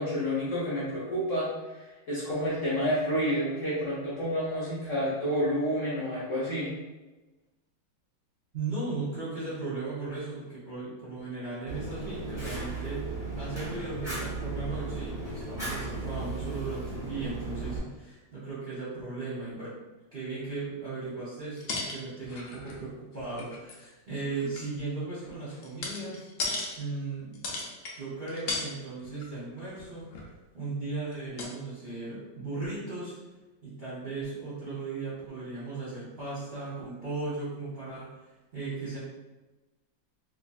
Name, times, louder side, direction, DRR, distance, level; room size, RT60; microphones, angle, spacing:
voice 1, 0.0-1.5 1.7-6.7, equal, 55° left, -9 dB, 0.9 m, -29 dB
voice 2, 8.5-19.7 20.1-27.4 27.9-30.1 30.5-33.1 33.6-38.1 38.5-39.0, right 3 dB, 45° right, -10 dB, 0.8 m, -37 dB
Fire, 11.7-17.8, right 3 dB, 5° right, 0.4 m, -36 dB
sound 1, 21.6-22.9 23.1-23.9 24.3-26.8 27.3-28.0 28.3-28.7 29.0-29.2 29.6-30.4 31.1-31.2 31.4-31.5, left 3 dB, 85° left, 0.7 m, -36 dB
3.3 x 2.5 x 2.3 m, 1.1 s
omnidirectional pair, 2.0 m